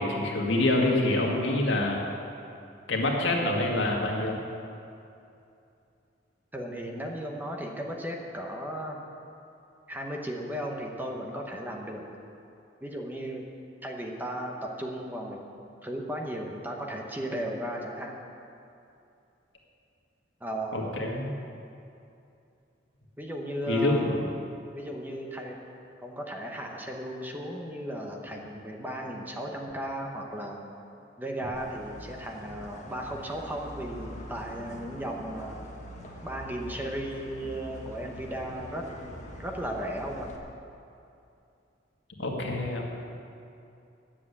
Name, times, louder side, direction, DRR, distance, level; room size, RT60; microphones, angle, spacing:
voice 1, 0.0-2.0 2.9-4.4 20.7-21.3 23.7-24.2 42.2-42.8, left 2 dB, 70° left, -1 dB, 1.8 m, -26 dB
voice 2, 6.5-9.0 9.9-12.0 12.8-13.5 13.8-15.4 15.8-18.1 20.4-20.9 23.2-24.2 24.7-25.6 26.0-30.6 31.2-35.6 36.2-40.3, right 1 dB, 10° right, 0 dB, 1.0 m, -35 dB
sound 1, 31.5-40.4, equal, 40° left, 1.4 m, -44 dB
10.0 x 7.6 x 8.3 m, 2.7 s
head